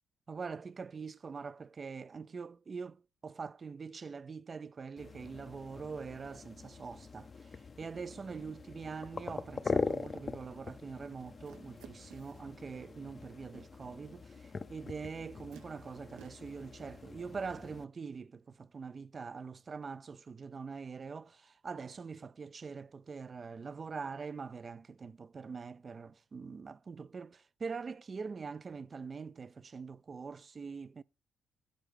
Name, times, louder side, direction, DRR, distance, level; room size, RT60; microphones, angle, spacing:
voice 1, 0.3-31.0, right 5 dB, 35° right, 0.3 m, -44 dB
sound 1, 5.0-17.8, left 4 dB, 35° left, 0.5 m, -42 dB
sound 2, 11.4-12.5 14.4-14.5 15.5-16.6, right 10 dB, 85° right, 0.6 m, -57 dB
10.0 x 4.6 x 3.6 m
cardioid pair, 90°, 0 cm